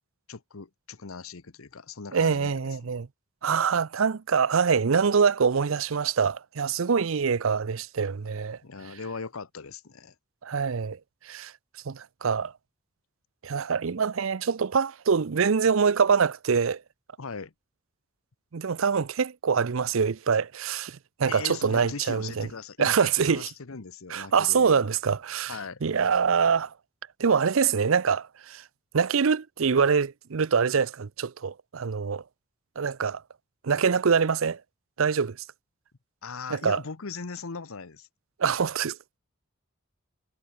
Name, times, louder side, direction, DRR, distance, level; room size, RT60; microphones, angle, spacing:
voice 1, 0.3-3.0 8.6-10.1 17.2-17.5 21.3-24.9 25.5-25.8 36.2-38.1, left 4 dB, 75° left, 1.0 m, -39 dB
voice 2, 2.1-3.1 3.4-8.6 10.4-11.0 11.2-11.5 11.9-12.5 13.4-16.8 18.5-22.5 22.8-23.5 24.1-26.7 27.2-28.6 28.9-32.2 32.8-33.2 33.6-34.6 35.0-35.4 36.5-36.8 38.4-39.2, right 6 dB, 70° right, 0.6 m, -25 dB
head